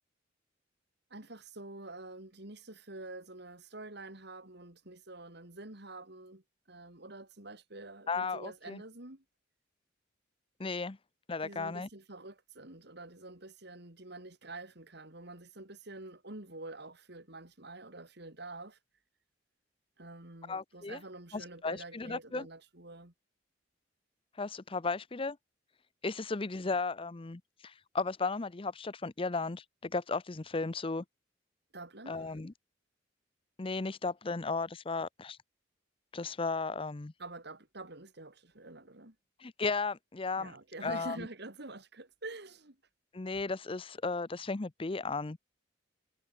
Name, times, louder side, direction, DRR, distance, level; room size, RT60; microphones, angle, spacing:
voice 1, 1.1-9.2 11.4-18.8 20.0-23.1 31.7-32.4 37.2-39.1 40.4-42.8, right 2 dB, 60° right, 3.4 m, -47 dB
voice 2, 8.1-8.8 10.6-11.0 11.3-11.9 20.5-21.0 21.3-22.5 24.4-25.4 26.0-31.0 32.1-32.5 33.6-35.4 36.1-37.1 39.4-40.5 40.8-41.2 43.1-45.4, left 4 dB, 30° left, 0.6 m, -35 dB
head